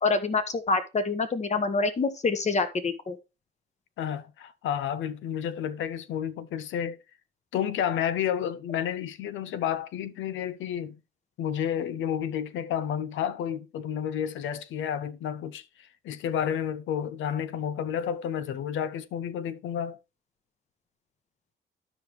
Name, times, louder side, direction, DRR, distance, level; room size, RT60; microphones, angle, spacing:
voice 1, 0.0-3.2, left 4 dB, 35° left, 1.2 m, -26 dB
voice 2, 4.0-7.0 7.5-11.0 11.4-20.0, left 9 dB, 75° left, 0.6 m, -31 dB
12.0 x 4.9 x 3.2 m
cardioid pair, 90°, 20 cm